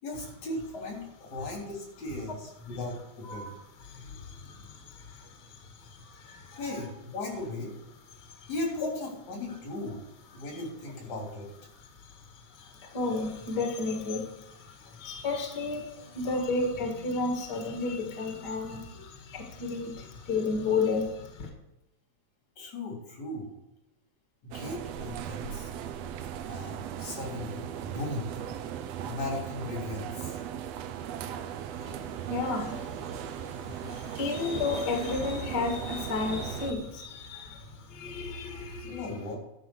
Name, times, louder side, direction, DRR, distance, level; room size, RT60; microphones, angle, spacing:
voice 1, 0.0-3.5 6.6-7.7 8.5-10.0 10.3-11.5 22.6-23.5 24.4-25.7 26.5-28.3 29.0-30.4 38.8-39.4, left 2 dB, 70° left, -1 dB, 4.6 m, -37 dB
voice 2, 3.8-6.8 8.1-8.5 10.5-10.6 11.7-21.5 31.7-39.1, left 3 dB, 40° left, 2 dB, 2.0 m, -33 dB
sound 1, 24.5-36.7, right 9 dB, 75° right, 1.7 m, -38 dB
12.0 x 5.6 x 7.8 m, 0.91 s
omnidirectional pair, 3.3 m